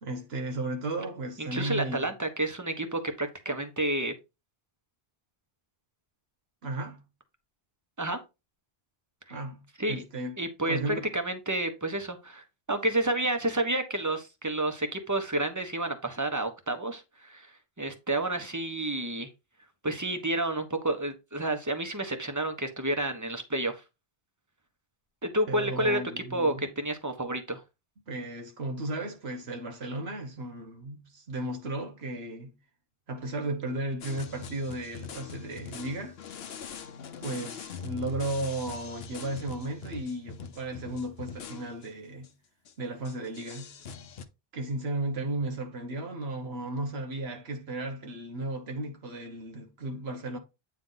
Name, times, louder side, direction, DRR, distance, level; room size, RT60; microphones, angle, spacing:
voice 1, 0.0-2.1 6.6-7.0 9.3-9.6 9.9-10.4 10.7-11.1 25.5-26.7 28.1-32.5 33.1-36.2 37.2-42.3 42.8-43.8 44.5-50.4, right 2 dB, 85° right, 1.3 m, -35 dB
voice 2, 1.4-4.1 8.0-8.2 9.8-10.0 10.4-17.5 17.8-19.3 19.8-23.8 25.2-27.6, right 1 dB, 20° right, 1.2 m, -30 dB
sound 1, 34.0-41.9 42.2-42.3 42.7-42.8 43.0-44.3, left 6 dB, 75° left, 1.0 m, -43 dB
9.1 x 3.5 x 3.9 m
omnidirectional pair, 1.0 m